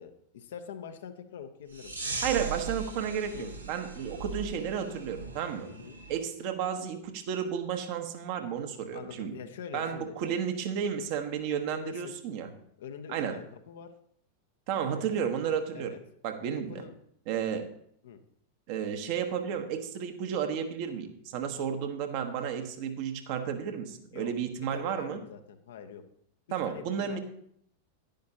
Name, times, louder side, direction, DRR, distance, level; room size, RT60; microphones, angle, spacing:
voice 1, 0.0-2.2 3.3-3.5 5.6-6.0 8.9-10.2 11.4-12.2 12.8-13.9 14.8-15.4 15.7-16.0 16.7-16.9 18.0-18.2 24.1-24.3 24.7-26.0 26.5-27.2, left 7 dB, 60° left, 8 dB, 0.8 m, -44 dB
sound 1, 1.7-6.2, right 4 dB, 85° right, 1.7 m, -39 dB
voice 2, 2.2-5.7 6.1-9.4 9.7-12.5 13.1-13.4 14.7-15.9 16.2-16.8 17.3-17.7 18.7-25.2 26.5-27.2, right 8 dB, 45° right, 6 dB, 1.1 m, -32 dB
10.5 x 10.5 x 2.8 m, 0.68 s
figure-of-eight pair, 90°, 0 cm